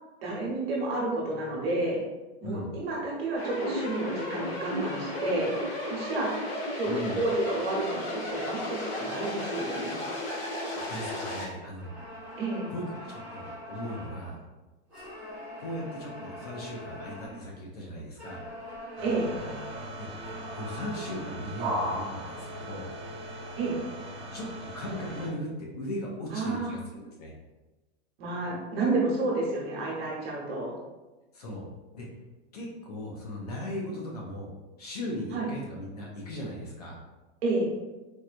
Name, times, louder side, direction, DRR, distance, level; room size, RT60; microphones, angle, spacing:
voice 1, 0.2-2.0 2.4-5.5 5.8-6.3 6.7-6.9 7.2-10.0 12.4-12.7 19.0-19.3 23.6-23.8 26.3-26.8 28.2-30.7 35.3-35.5 37.4-37.7, right 2 dB, 60° right, -3 dB, 1.2 m, -30 dB
voice 2, 2.4-2.7 6.8-7.2 10.9-11.9 12.7-14.4 15.6-18.4 20.0-20.1 20.5-22.9 24.3-24.5 24.7-27.3 31.3-31.7 31.9-32.1 32.5-34.5 34.8-37.0, left 1 dB, 35° left, -2 dB, 0.4 m, -38 dB
sound 1, 3.4-11.5, left 1 dB, 60° left, 1.1 m, -34 dB
sound 2, 8.3-11.3 11.8-14.4 14.9-17.5 18.2-22.4, left 1 dB, 5° right, 0.6 m, -44 dB
sound 3, 19.0-25.3, right 1 dB, 45° right, 0.7 m, -37 dB
4.3 x 2.2 x 2.4 m, 1.1 s
supercardioid pair, 180°, 34 cm